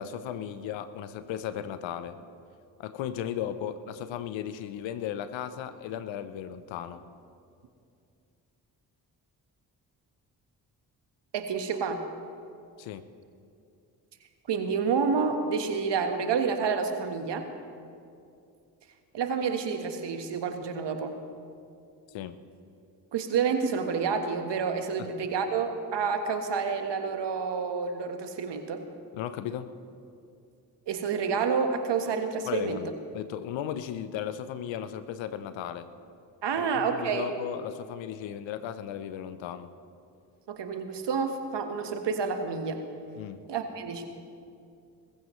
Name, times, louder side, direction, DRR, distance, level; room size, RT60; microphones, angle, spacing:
voice 1, 0.0-2.2 2.8-7.0 12.8-13.0 22.1-22.4 25.0-25.1 29.1-29.7 32.5-35.9 36.5-39.7 43.1-43.4, left 10 dB, 80° left, 12 dB, 0.8 m, -36 dB
voice 2, 11.3-12.0 14.5-17.4 19.1-21.1 23.1-28.8 30.9-32.8 36.4-37.3 40.5-42.8 43.5-44.1, right 5 dB, 65° right, 6 dB, 1.4 m, -29 dB
20.5 x 15.0 x 3.1 m, 2.5 s
hypercardioid pair, 40°, 45 cm